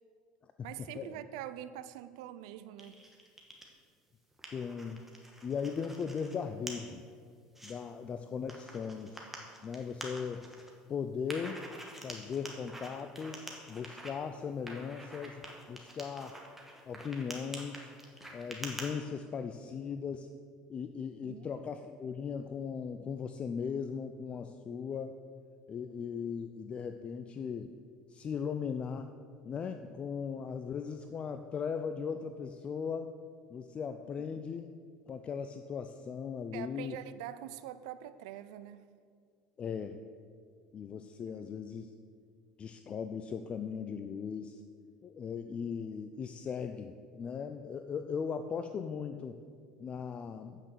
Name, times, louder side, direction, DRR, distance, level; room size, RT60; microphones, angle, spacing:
voice 1, 0.6-3.0 21.2-21.5 36.5-38.8 41.3-41.4, right 12 dB, 80° right, 14 dB, 0.5 m, -44 dB
sound 1, 2.8-3.7 4.1-6.3 6.7-6.8 7.3-7.7 8.5-10.7 11.3-14.1 14.7-18.9, right 1 dB, 5° right, 1.9 m, -46 dB
voice 2, 4.5-5.0 5.4-7.0 7.6-9.3 9.6-10.5 10.9-11.6 12.0-16.4 16.9-17.9 18.3-20.3 20.7-25.2 25.7-27.7 28.1-29.1 29.4-33.1 33.5-34.7 35.1-37.0 39.6-40.0 40.7-41.9 42.6-44.6 45.0-49.4 49.8-50.6, left 6 dB, 35° left, 8 dB, 0.5 m, -38 dB
8.8 x 6.0 x 6.8 m, 2.1 s
supercardioid pair, 95°, 3 cm